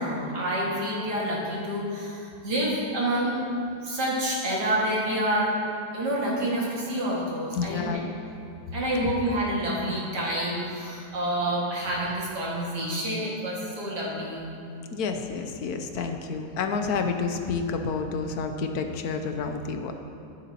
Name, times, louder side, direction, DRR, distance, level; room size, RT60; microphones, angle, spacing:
voice 1, 0.0-3.4 3.8-5.5 5.9-8.0 8.7-14.4, right 1 dB, 85° right, -5 dB, 2.6 m, -28 dB
voice 2, 7.6-8.0 9.0-9.1 14.9-19.9, left 5 dB, 70° left, 5 dB, 1.1 m, -29 dB
12.0 x 9.9 x 2.9 m, 2.5 s
omnidirectional pair, 1.8 m